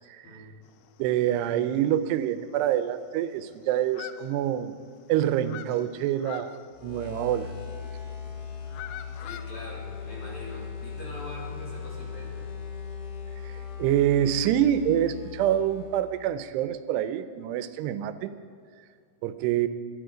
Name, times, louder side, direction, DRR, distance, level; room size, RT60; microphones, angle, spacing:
sound 1, 0.7-1.3 1.7-1.8 2.2-2.3 2.5-3.5 3.8-4.9 5.2-7.7 8.4-9.4, left 11 dB, 80° left, 2.5 m, -44 dB
voice 1, 1.0-4.7 5.1-6.6 6.8-7.5 13.4-18.3 19.2-19.7, right 11 dB, 90° right, 12 dB, 2.8 m, -26 dB
sound 2, 6.7-16.2, left 6 dB, 55° left, 3.4 m, -39 dB
voice 2, 9.2-12.5, left 1 dB, 35° left, -4 dB, 3.7 m, -43 dB
20.0 x 12.5 x 5.1 m, 2.2 s
omnidirectional pair, 4.7 m